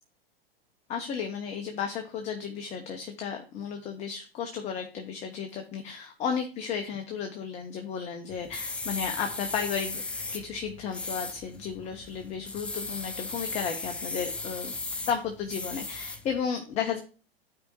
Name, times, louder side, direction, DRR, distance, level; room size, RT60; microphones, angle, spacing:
voice 1, 0.9-10.0 10.3-14.7 15.1-17.0, left 7 dB, 25° left, 4 dB, 0.8 m, -33 dB
sound 1, 8.3-16.4, left 3 dB, 5° left, 0.3 m, -37 dB
13.0 x 4.8 x 2.3 m, 0.37 s
figure-of-eight pair, 95°, 30 cm